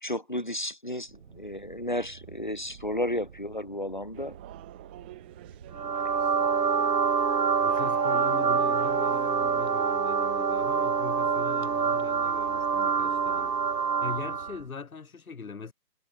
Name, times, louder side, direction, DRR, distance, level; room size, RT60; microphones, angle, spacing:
voice 1, 0.0-4.4, left 1 dB, 30° left, 0.5 m, -33 dB
sound 1, 1.0-14.7, right 7 dB, 40° right, 2.8 m, -50 dB
sound 2, 4.1-9.7, right 19 dB, 5° right, 1.0 m, -48 dB
sound 3, 5.7-14.6, right 6 dB, 75° right, 1.4 m, -26 dB
voice 2, 7.6-13.6 14.0-15.7, left 5 dB, 55° left, 7.1 m, -40 dB
figure-of-eight pair, 155°, 49 cm